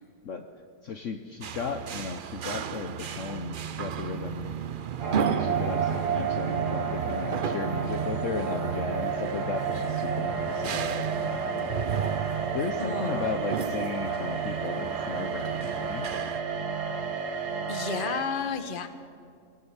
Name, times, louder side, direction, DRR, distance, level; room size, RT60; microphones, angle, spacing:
voice 1, 0.8-4.6 5.2-12.0 12.5-16.1, left 5 dB, 55° left, 6 dB, 1.1 m, -36 dB
sound 1, 1.4-16.4, right 7 dB, 60° right, 0.5 m, -34 dB
sound 2, 5.0-18.2, right 6 dB, 80° right, 1.9 m, -31 dB
voice 2, 12.8-13.3 17.7-18.9, left 5 dB, 35° left, 9 dB, 1.2 m, -32 dB
22.0 x 14.5 x 8.2 m, 2.3 s
omnidirectional pair, 1.7 m